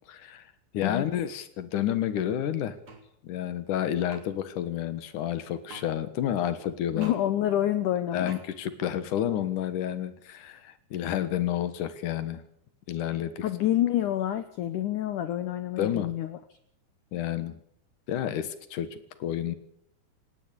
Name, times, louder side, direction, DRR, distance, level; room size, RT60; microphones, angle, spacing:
voice 1, 0.1-0.5 0.7-2.8 3.2-7.1 8.1-12.4 12.9-13.4 15.8-16.1 17.1-17.6 18.1-19.6, left 10 dB, 60° left, 13 dB, 2.4 m, -30 dB
sound 1, 2.9-3.0 4.1-4.2 5.7-5.9 7.0-7.2 8.3-8.4, right 4 dB, 30° right, 3.2 m, -44 dB
voice 2, 6.9-8.3 13.4-16.4, left 12 dB, 85° left, 11 dB, 1.8 m, -27 dB
18.5 x 17.5 x 8.4 m, 0.70 s
omnidirectional pair, 5.0 m